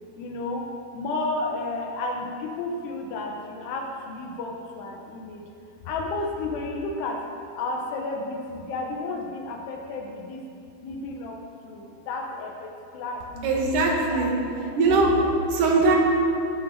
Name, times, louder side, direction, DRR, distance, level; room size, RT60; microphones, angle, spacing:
voice 1, 0.2-0.7 0.9-5.4 5.9-7.2 7.6-10.4 10.8-11.4 11.6-13.5 14.1-14.5 14.9-15.3, left 2 dB, 80° left, 1 dB, 3.1 m, -32 dB
voice 2, 13.4-14.3 14.8-15.1 15.5-16.0, right 3 dB, 60° right, -1 dB, 3.1 m, -20 dB
19.5 x 10.5 x 4.2 m, 2.7 s
omnidirectional pair, 4.7 m